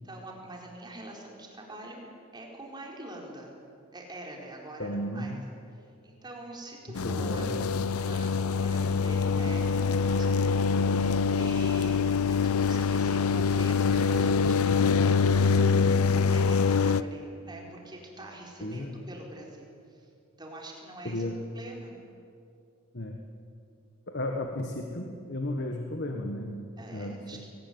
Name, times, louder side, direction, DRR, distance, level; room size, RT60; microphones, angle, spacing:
voice 1, 0.0-2.0 2.3-3.5 3.9-5.4 5.7-7.5 7.9-20.1 20.4-21.2 21.5-22.0 26.8-27.5, right 1 dB, 20° right, -1 dB, 4.5 m, -44 dB
voice 2, 4.8-5.4 7.0-7.6 18.6-19.0 21.1-21.3 22.9-23.2 24.1-26.6 26.9-27.5, left 1 dB, 50° left, 3 dB, 1.6 m, -34 dB
sound 1, 6.9-17.0, left 5 dB, 85° left, 0.7 m, -25 dB
22.5 x 19.0 x 9.5 m, 2.5 s
head